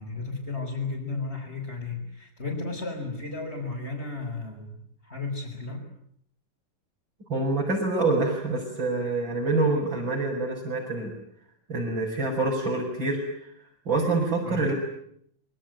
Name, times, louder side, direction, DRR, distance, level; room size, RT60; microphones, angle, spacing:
voice 1, 0.0-5.8 14.4-14.7, left 3 dB, 20° left, -5 dB, 5.4 m, -34 dB
voice 2, 7.3-11.1 11.7-13.2 13.9-14.7, right 3 dB, 35° right, -3 dB, 6.8 m, -26 dB
26.5 x 23.5 x 9.3 m, 0.70 s
omnidirectional pair, 3.7 m